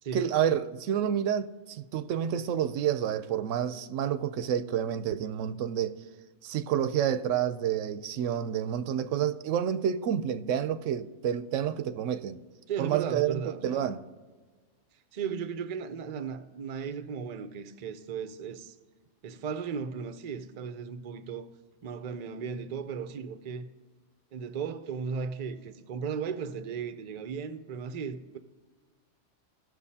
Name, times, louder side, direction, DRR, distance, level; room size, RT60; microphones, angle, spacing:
voice 1, 0.1-6.0 6.4-12.4 12.8-14.0, right 9 dB, 85° right, 0.9 m, -29 dB
voice 2, 12.7-13.9 15.1-18.8 19.2-21.5 21.8-23.7 24.3-28.4, right 6 dB, 45° right, 0.5 m, -36 dB
17.0 x 6.1 x 2.8 m
omnidirectional pair, 1.3 m